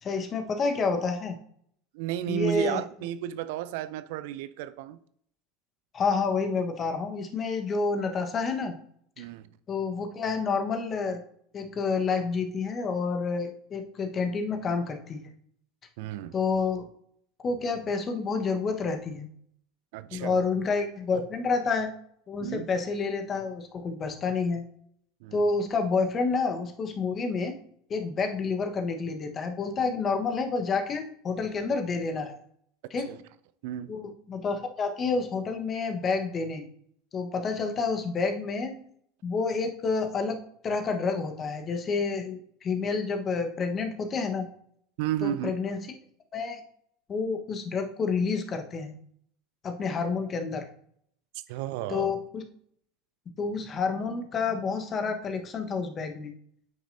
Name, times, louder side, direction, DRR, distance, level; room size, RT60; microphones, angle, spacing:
voice 1, 0.0-1.4 2.3-2.8 5.9-8.7 9.2-9.3 9.7-11.2 11.5-15.4 16.3-16.8 17.4-19.3 20.1-21.9 22.3-24.6 25.3-27.6 27.9-32.4 32.9-33.1 33.9-36.6 37.1-38.7 39.2-44.5 45.2-45.9 46.3-46.6 47.1-48.9 49.6-50.7 51.9-52.4 53.4-56.3, left 4 dB, 35° left, 1.3 m, -29 dB
voice 2, 1.9-5.0 9.2-9.5 16.0-16.4 19.9-20.4 22.4-22.7 25.2-25.4 33.1-33.2 33.6-33.9 45.0-45.5 51.5-52.1, right 12 dB, 65° right, 0.4 m, -32 dB
8.9 x 6.0 x 2.7 m
hypercardioid pair, 80°, 0 cm